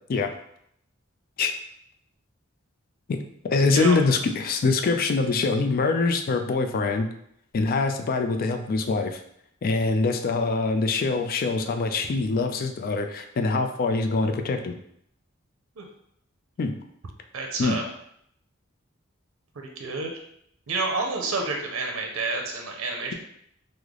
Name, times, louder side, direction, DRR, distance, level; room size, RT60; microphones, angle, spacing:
voice 1, 3.4-7.1 7.5-9.2 9.6-14.7 16.6-16.8 17.6-17.8, left 3 dB, 45° left, 6 dB, 0.3 m, -24 dB
voice 2, 17.3-17.9 19.6-20.1 20.7-23.1, right 3 dB, 90° right, 2 dB, 0.6 m, -29 dB
3.2 x 2.0 x 3.6 m, 0.72 s
head